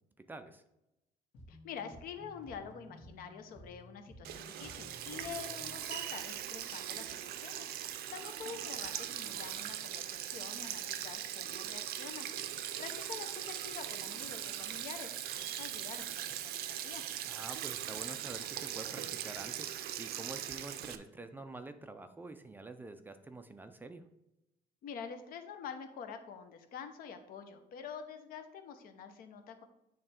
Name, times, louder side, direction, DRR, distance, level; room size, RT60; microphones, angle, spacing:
voice 1, 0.2-0.6 17.3-24.0, right 2 dB, 10° right, 8 dB, 0.3 m, -47 dB
sound 1, 1.3-5.9, left 1 dB, 85° left, 1.9 m, -55 dB
voice 2, 1.5-7.7 8.1-12.3 12.8-17.0 24.8-29.6, left 6 dB, 60° left, 7 dB, 0.8 m, -47 dB
Sink (filling or washing), 4.2-21.0, right 11 dB, 75° right, 0.5 m, -40 dB
8.7 x 3.3 x 4.3 m, 0.89 s
cardioid pair, 165°, 16 cm